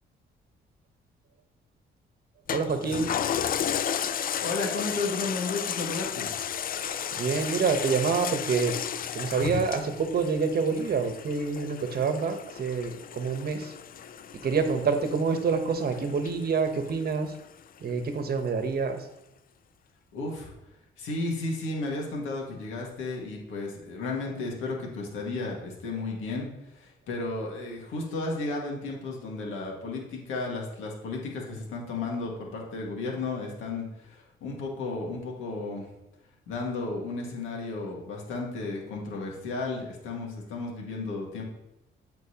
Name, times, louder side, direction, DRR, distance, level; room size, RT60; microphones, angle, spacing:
Toilet flush, 2.5-17.3 17.8-17.9, left 8 dB, 45° left, 0.4 m, -34 dB
voice 1, 2.5-3.1 6.8-8.7 9.1-13.7 14.4-17.3 17.8-19.0, right 5 dB, 50° right, 7 dB, 1.1 m, -27 dB
voice 2, 4.4-6.3 20.1-20.5 21.0-26.5 26.7-35.9 36.5-41.4, left 3 dB, 85° left, -1 dB, 2.0 m, -33 dB
12.5 x 4.5 x 2.9 m, 0.90 s
cardioid pair, 90°, 20 cm